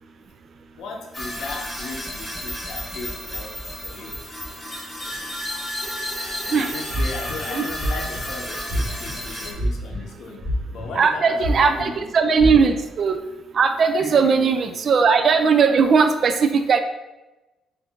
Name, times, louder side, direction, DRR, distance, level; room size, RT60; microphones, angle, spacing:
voice 1, 0.8-3.5 3.8-4.2 4.8-4.9 6.4-12.1 12.4-12.5 14.0-14.4, left 3 dB, 75° left, 1 dB, 0.6 m, -36 dB
sound 1, 1.1-9.5, equal, 5° left, 1.2 m, -32 dB
sound 2, 6.9-7.4 7.8-8.2 8.7-9.1 9.5-10.0 10.4-11.0 11.4-11.8 12.4-12.5, equal, 20° right, 1.5 m, -25 dB
voice 2, 10.9-13.2 13.5-16.8, right 5 dB, 50° right, 8 dB, 0.3 m, -18 dB
4.3 x 2.5 x 3.6 m, 1.0 s
cardioid pair, 90°, 0 cm